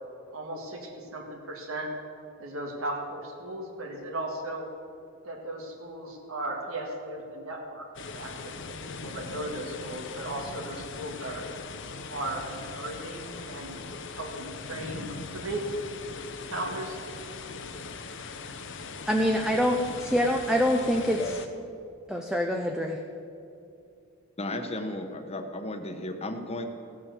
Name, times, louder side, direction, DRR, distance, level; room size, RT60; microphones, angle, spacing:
voice 1, 0.3-1.9 2.4-4.7 5.2-7.9 8.1-8.5 8.8-11.4 12.1-13.8 14.1-15.6 16.5-17.0, right 2 dB, 85° right, 0 dB, 1.9 m, -36 dB
sound 1, 8.0-21.5, left 4 dB, 60° left, 0.8 m, -40 dB
voice 2, 19.1-21.4 22.1-23.0, equal, 5° right, 2 dB, 0.6 m, -25 dB
voice 3, 20.8-21.4 24.4-26.7, left 1 dB, 30° left, 6 dB, 1.1 m, -35 dB
16.0 x 7.3 x 6.8 m, 2.5 s
head